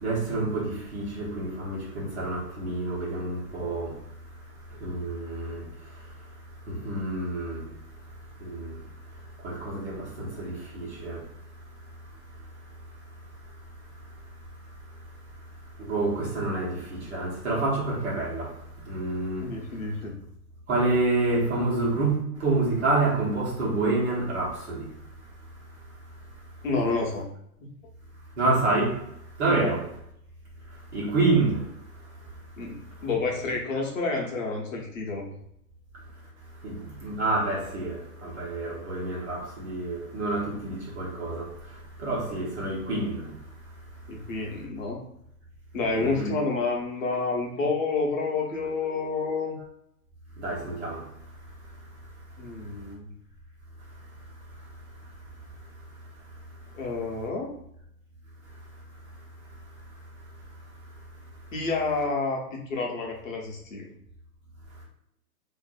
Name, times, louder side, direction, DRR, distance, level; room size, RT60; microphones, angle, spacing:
voice 1, 0.0-4.0 4.8-5.7 6.7-7.7 8.4-8.8 9.4-11.2 15.8-18.5 18.9-19.5 20.7-24.9 28.4-29.0 29.4-29.8 30.9-31.6 36.6-41.5 42.0-43.3 46.0-46.3 50.4-51.0, right 2 dB, 45° right, 1.0 m, -28 dB
voice 2, 19.4-20.2 26.6-27.3 27.6-27.7 29.5-29.7 32.6-35.3 44.1-45.0 45.7-49.6 52.4-53.1 56.7-57.5 61.5-63.9, left 3 dB, 55° left, 0.8 m, -29 dB
2.5 x 2.5 x 2.3 m
hypercardioid pair, 160°, 47 cm